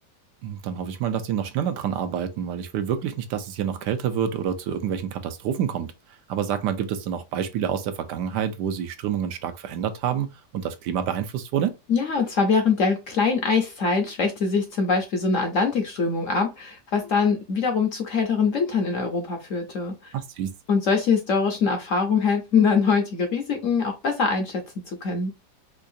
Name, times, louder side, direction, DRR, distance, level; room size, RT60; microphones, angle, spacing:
voice 1, 0.4-11.7 20.1-20.5, right 8 dB, 75° right, 1.2 m, -28 dB
voice 2, 11.9-20.1 20.7-25.3, left 5 dB, 55° left, 0.9 m, -23 dB
4.5 x 2.4 x 2.6 m
omnidirectional pair, 1.9 m